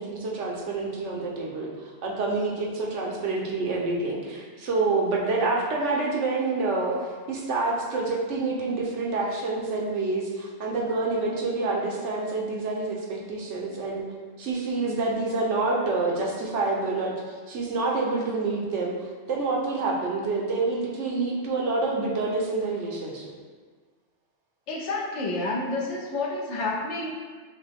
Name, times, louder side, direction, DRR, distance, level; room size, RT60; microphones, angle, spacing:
voice 1, 0.0-14.0 14.4-23.3, right 3 dB, 80° right, -2 dB, 1.1 m, -27 dB
voice 2, 24.7-27.1, left 2 dB, 75° left, -4 dB, 1.1 m, -29 dB
6.3 x 2.2 x 3.4 m, 1.5 s
omnidirectional pair, 1.2 m